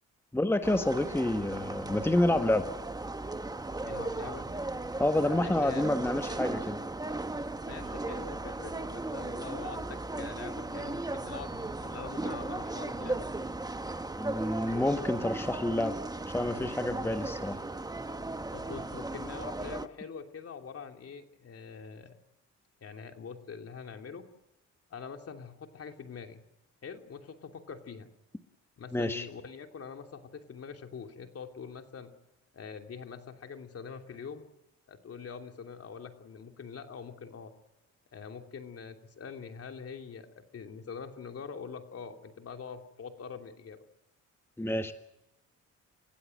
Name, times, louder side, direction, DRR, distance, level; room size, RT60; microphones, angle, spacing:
voice 1, 0.3-2.6 5.0-6.8 14.2-16.0 16.3-17.6 28.9-29.3 44.6-44.9, left 1 dB, 10° left, 7 dB, 1.5 m, -28 dB
sound 1, 0.6-19.9, right 2 dB, 15° right, 1.2 m, -36 dB
voice 2, 3.8-4.5 5.1-5.9 7.7-13.3 18.5-22.2 22.8-24.3 24.9-26.4 26.8-28.1 28.8-32.1 32.5-34.5 34.9-37.5 38.1-43.8, left 6 dB, 50° left, 5 dB, 3.0 m, -44 dB
29.5 x 16.0 x 7.8 m, 0.92 s
cardioid pair, 90°, 30 cm